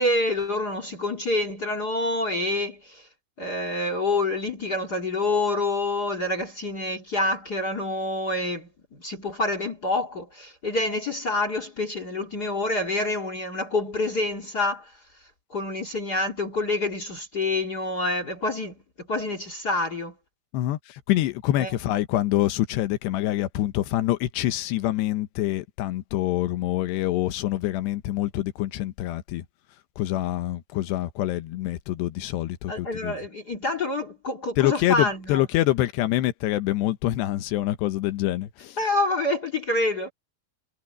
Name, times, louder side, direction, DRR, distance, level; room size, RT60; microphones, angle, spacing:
voice 1, 0.0-3.0 3.4-8.7 9.0-14.9 15.5-20.1 21.6-21.7 32.7-35.4 38.8-40.1, left 2 dB, 35° left, 1.7 m, -27 dB
voice 2, 20.5-29.5 30.0-33.2 34.6-38.8, left 15 dB, 90° left, 3.2 m, -26 dB
omnidirectional pair, 4.8 m